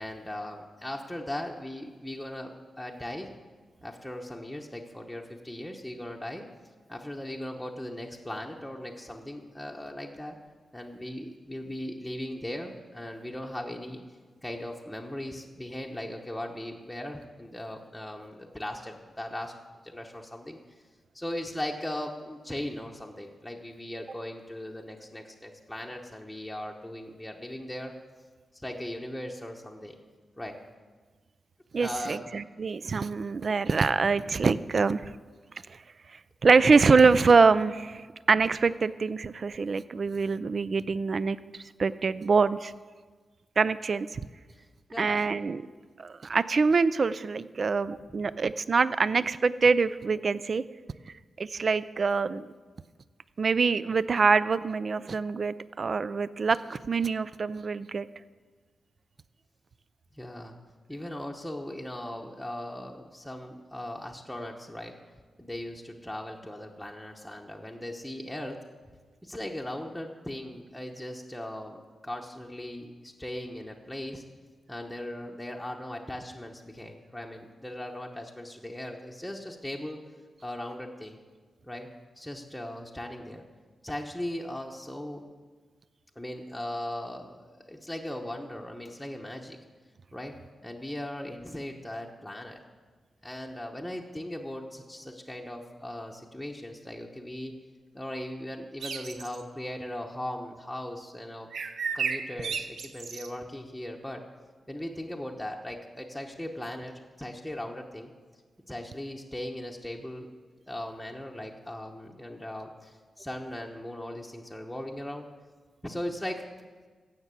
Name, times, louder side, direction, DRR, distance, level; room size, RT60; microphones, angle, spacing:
voice 1, 0.0-3.3 3.8-6.4 6.9-10.4 10.7-14.0 14.4-19.5 19.8-20.6 21.1-27.9 28.5-30.0 30.4-30.6 31.8-32.2 44.5-45.2 45.6-45.8 48.2-48.3 60.1-60.5 60.9-64.9 65.4-68.6 69.2-74.2 74.7-80.0 80.4-81.2 81.6-81.9 82.2-83.4 83.8-85.2 86.2-89.6 90.1-90.4 90.6-92.6 93.2-97.5 97.9-101.5 101.9-104.2 104.7-106.9 107.2-108.1 108.7-110.3 110.7-115.3 115.8-116.4, left 1 dB, 5° left, -1 dB, 1.0 m, -38 dB
voice 2, 31.7-35.1 35.7-35.8 36.4-42.7 43.6-44.2 45.0-45.6 46.0-50.6 51.4-52.5 53.4-58.1, right 4 dB, 50° right, 16 dB, 0.4 m, -25 dB
sound 1, 98.8-99.4 101.5-103.3, right 6 dB, 80° right, 0.8 m, -33 dB
15.0 x 5.9 x 8.3 m, 1.5 s
wide cardioid pair, 110°, 0 cm